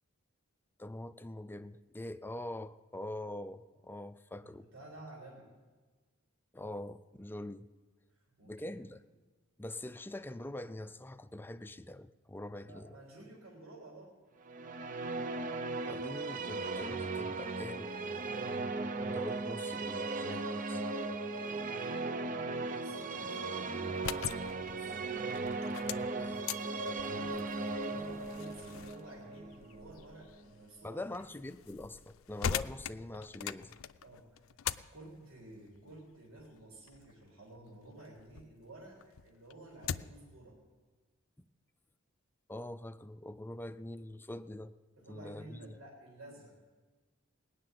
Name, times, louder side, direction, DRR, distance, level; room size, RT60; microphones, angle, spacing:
voice 1, 0.8-4.7 6.5-7.7 8.4-9.0 9.6-13.0 15.9-17.9 19.0-20.9 26.2-26.5 30.8-33.8 42.5-44.7 45.0-45.8, left 1 dB, 10° left, 12 dB, 0.4 m, -44 dB
voice 2, 4.4-5.5 8.1-8.7 12.7-14.2 22.1-22.5 22.7-25.0 26.8-31.1 34.0-34.5 34.9-40.6 45.0-46.7, right 2 dB, 80° right, -3 dB, 3.7 m, -52 dB
sound 1, 14.4-30.5, right 3 dB, 40° right, 0.6 m, -37 dB
sound 2, 23.8-38.5 38.9-40.3, left 8 dB, 70° left, 0.5 m, -43 dB
19.5 x 6.6 x 9.4 m, 1.3 s
head